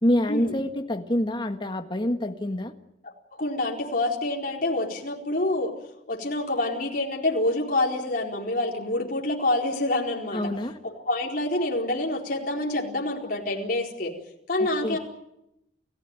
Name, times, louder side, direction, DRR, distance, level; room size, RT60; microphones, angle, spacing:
voice 1, 0.0-2.7 10.3-10.8 14.6-15.0, left 1 dB, 25° left, 6 dB, 1.7 m, -26 dB
voice 2, 3.0-5.7 6.1-10.4 10.8-14.1 14.5-15.0, left 2 dB, 50° left, 0 dB, 4.5 m, -27 dB
30.0 x 16.0 x 9.2 m, 0.86 s
head